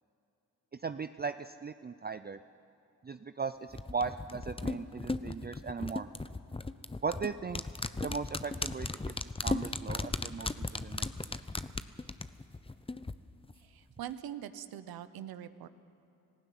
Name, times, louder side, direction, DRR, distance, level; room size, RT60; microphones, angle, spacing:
voice 1, 0.7-2.4 3.0-6.1 7.0-7.6 8.0-9.1 9.4-11.4, right 5 dB, 25° right, 11 dB, 0.5 m, -38 dB
sound 1, 3.7-13.1 13.4-13.5, left 3 dB, 15° left, 0.8 m, -36 dB
voice 2, 13.6-15.7, right 10 dB, 90° right, 13 dB, 0.8 m, -43 dB
18.5 x 15.5 x 9.2 m, 2.8 s
supercardioid pair, 50°, 35 cm